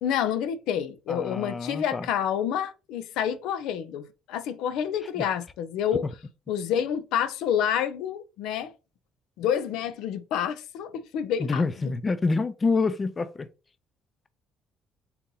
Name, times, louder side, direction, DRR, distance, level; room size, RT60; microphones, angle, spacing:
voice 1, 0.0-6.0 6.5-8.7 9.4-11.6, left 9 dB, 85° left, 0.5 m, -28 dB
voice 2, 1.1-2.1 5.2-5.3 11.4-13.5, left 4 dB, 30° left, 0.5 m, -27 dB
4.2 x 2.6 x 3.8 m
cardioid pair, 100°, 0 cm